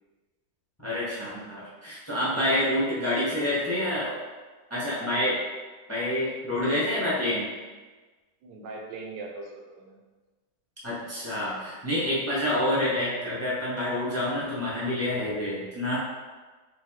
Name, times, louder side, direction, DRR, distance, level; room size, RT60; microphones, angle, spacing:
voice 1, 0.8-4.2 4.7-5.4 5.9-7.5 10.8-16.0, left 1 dB, 15° left, -8 dB, 0.7 m, -27 dB
voice 2, 2.3-2.6 2.9-4.0 8.4-10.0, right 3 dB, 90° right, 0 dB, 1.4 m, -41 dB
5.4 x 2.6 x 3.6 m, 1.3 s
omnidirectional pair, 1.9 m